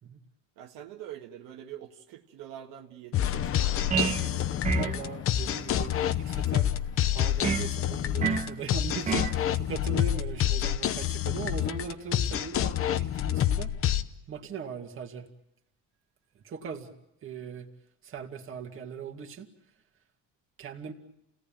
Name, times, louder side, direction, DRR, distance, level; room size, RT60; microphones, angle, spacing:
voice 1, 0.6-4.9, right 10 dB, 70° right, 2 dB, 1.8 m, -46 dB
sound 1, 3.1-14.0, left 11 dB, 40° left, 0.9 m, -28 dB
sound 2, 3.9-4.3 4.6-5.0 7.4-7.7 8.2-8.5 9.1-9.4, right 6 dB, 20° right, 1.0 m, -28 dB
voice 2, 4.7-6.7 7.1-13.7 14.3-15.3 16.4-16.9 17.2-17.7 18.0-19.5 20.6-20.9, right 6 dB, 40° right, 3 dB, 2.3 m, -39 dB
29.0 x 18.0 x 9.0 m, 0.85 s
cardioid pair, 155°, 34 cm